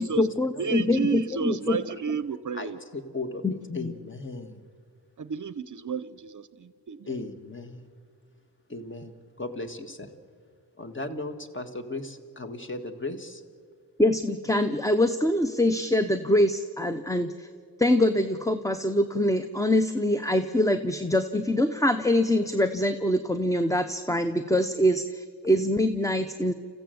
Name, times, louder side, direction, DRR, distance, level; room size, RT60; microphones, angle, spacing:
voice 1, 0.0-1.8 3.4-3.9 14.0-17.5 17.8-26.5, left 1 dB, 10° left, 10 dB, 0.7 m, -24 dB
voice 2, 0.6-2.8 5.2-7.2, right 6 dB, 50° right, 15 dB, 0.7 m, -31 dB
voice 3, 2.5-4.6 7.1-7.9 8.7-10.1 10.8-13.4, left 2 dB, 30° left, 7 dB, 1.7 m, -37 dB
28.5 x 15.0 x 7.8 m, 2.2 s
wide cardioid pair, 95°, 40 cm